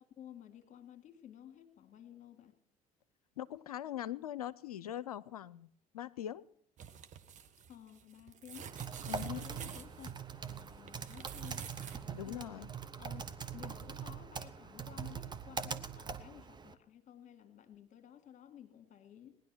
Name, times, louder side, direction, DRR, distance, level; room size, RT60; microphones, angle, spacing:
voice 1, 0.0-2.6 7.7-8.7 9.2-11.7 12.3-12.7 13.0-19.3, left 10 dB, 40° left, 8 dB, 2.0 m, -54 dB
voice 2, 3.4-5.7 5.9-6.4 9.1-9.5 12.1-12.7, left 11 dB, 75° left, 19 dB, 0.6 m, -41 dB
sound 1, 6.8-12.0 12.3-12.4, right 8 dB, 40° right, 1.3 m, -50 dB
Typing, 8.5-16.7, right 6 dB, 25° right, 1.1 m, -43 dB
19.0 x 11.0 x 6.0 m, 0.64 s
figure-of-eight pair, 60°, 19 cm